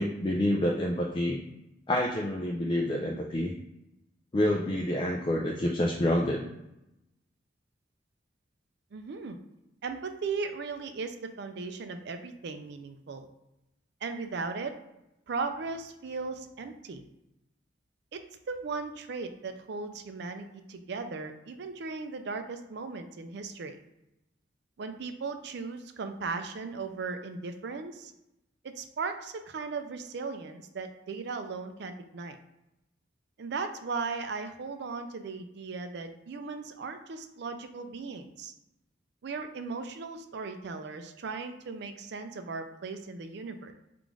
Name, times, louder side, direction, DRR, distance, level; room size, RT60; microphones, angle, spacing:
voice 1, 0.0-1.4 1.9-3.5 4.3-6.4, left 1 dB, 25° left, 0 dB, 0.4 m, -28 dB
voice 2, 8.9-9.4 9.8-13.3 14.0-14.8 15.3-17.0 18.1-18.2 18.5-23.8 24.8-28.1 28.6-32.4 33.4-38.5 39.2-43.7, right 4 dB, 65° right, 7 dB, 0.4 m, -37 dB
3.7 x 2.5 x 4.6 m, 0.89 s
head